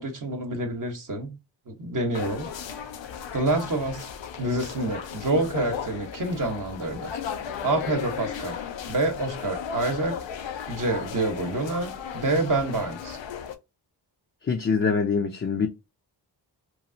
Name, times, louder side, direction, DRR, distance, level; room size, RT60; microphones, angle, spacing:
voice 1, 0.0-1.4 1.7-2.5 3.3-4.1 4.4-7.1 7.6-8.6 8.9-10.2 10.7-13.2, right 2 dB, 45° right, 0.9 m, -27 dB
sound 1, 2.1-13.5, left 7 dB, 85° left, 0.6 m, -36 dB
voice 2, 14.5-15.7, left 5 dB, 30° left, 0.5 m, -24 dB
3.1 x 2.3 x 2.6 m
cardioid pair, 55°, 43 cm